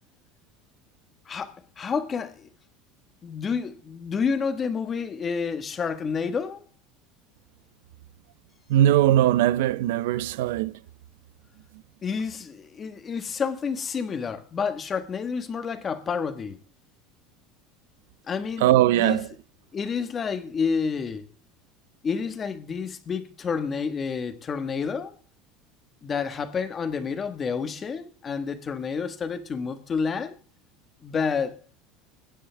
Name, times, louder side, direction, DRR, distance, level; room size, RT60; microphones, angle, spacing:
voice 1, 1.2-2.5 3.2-6.6 12.0-16.6 18.3-19.2 19.7-21.3 22.0-25.1 26.0-30.4 31.0-31.6, left 5 dB, 25° left, 1.4 m, -29 dB
voice 2, 8.7-10.7 18.6-19.3, right 13 dB, 90° right, 0.6 m, -20 dB
22.5 x 10.0 x 3.4 m
cardioid pair, 150°, 0 cm